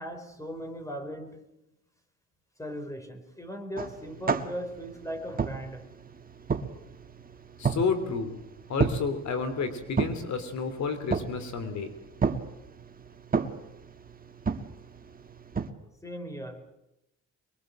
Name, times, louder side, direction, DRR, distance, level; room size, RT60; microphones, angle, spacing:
voice 1, 0.0-1.4 2.6-5.9 16.0-16.8, equal, 10° left, 7 dB, 4.6 m, -38 dB
sound 1, 3.8-15.7, right 5 dB, 30° right, 1.7 m, -33 dB
voice 2, 7.6-8.4 8.7-11.9, left 5 dB, 65° left, 10 dB, 3.5 m, -30 dB
24.0 x 22.0 x 7.7 m, 0.86 s
cardioid pair, 90°, 30 cm